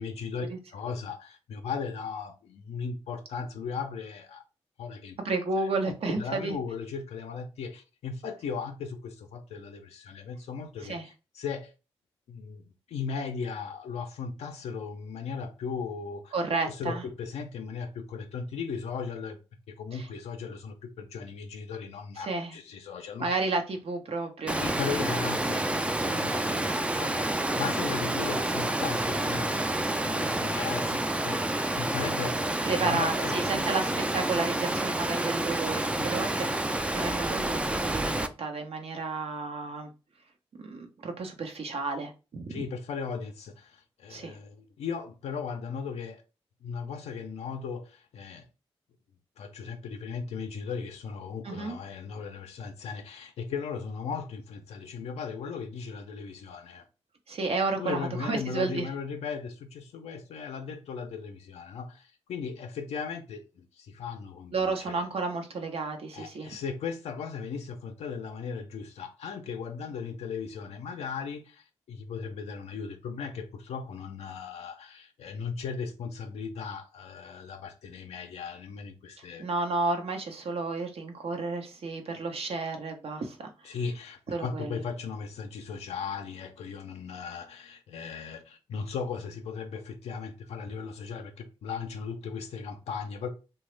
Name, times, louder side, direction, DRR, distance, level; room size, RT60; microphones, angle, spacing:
voice 1, 0.0-4.4 4.8-5.2 5.6-11.7 12.3-16.3 16.6-19.4 19.7-23.3 24.6-29.6 30.0-34.3 36.1-36.2 42.5-46.2 46.6-48.5 49.4-56.8 57.8-65.1 66.1-79.5 83.6-93.3, left 5 dB, 85° left, 0.4 m, -37 dB
voice 2, 5.2-6.6 10.8-11.1 16.3-17.0 19.9-20.1 22.2-22.6 23.2-24.6 24.9-25.1 32.6-39.9 40.6-42.7 44.1-44.4 51.4-51.8 57.3-58.9 64.5-66.5 79.4-83.5 84.3-84.8, right 3 dB, 65° right, 0.8 m, -32 dB
Water, 24.5-38.3, right 1 dB, 10° right, 0.3 m, -29 dB
2.9 x 2.2 x 3.2 m
cardioid pair, 55°, 11 cm